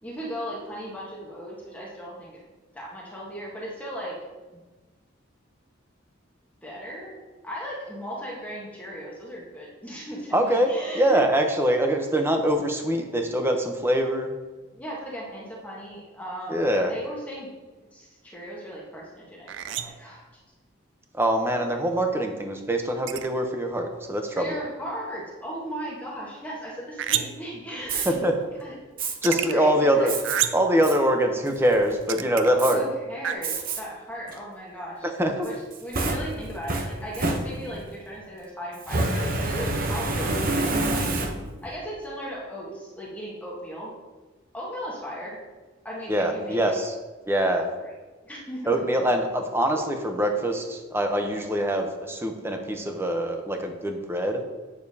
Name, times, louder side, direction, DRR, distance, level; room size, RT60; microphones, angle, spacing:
voice 1, 0.0-2.4 2.7-4.2 6.6-7.2 7.4-11.2 14.7-17.5 17.9-20.2 24.3-28.1 28.6-28.7 29.2-30.1 32.7-35.1 35.4-41.0 41.6-43.9 44.5-45.4 45.8-46.7 47.8-48.0 48.2-48.8, equal, 10° left, -5 dB, 1.2 m, -37 dB
voice 2, 10.3-14.3 16.5-16.9 21.1-24.6 28.1-28.3 29.2-30.1 30.5-32.8 35.2-35.5 46.1-46.9 47.3-47.7 48.7-54.4, right 1 dB, 10° right, 4 dB, 0.7 m, -24 dB
sound 1, 19.5-20.1 23.1-23.3 27.0-27.5 29.0-29.5 30.2-30.7 32.1-32.5 33.2-33.3, right 10 dB, 65° right, 0.4 m, -28 dB
Fire, 27.8-28.1 29.0-29.1 30.1-30.4 30.8-31.0 31.5-31.9 32.6-32.7 33.4-33.8 34.3-34.4 35.4-37.9 38.8-41.7, right 2 dB, 45° right, 0.8 m, -28 dB
8.6 x 6.7 x 2.8 m, 1.3 s
head